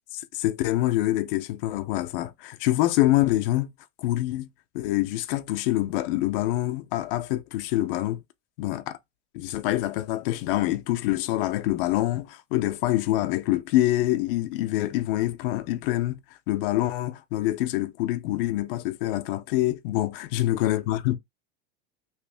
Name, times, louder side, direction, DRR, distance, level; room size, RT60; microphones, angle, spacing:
voice 1, 0.1-3.7 4.0-4.5 4.7-8.2 8.6-9.0 9.3-16.2 16.5-21.2, left 15 dB, 60° left, 0.7 m, -25 dB
3.4 x 3.2 x 3.4 m
supercardioid pair, 165°, 31 cm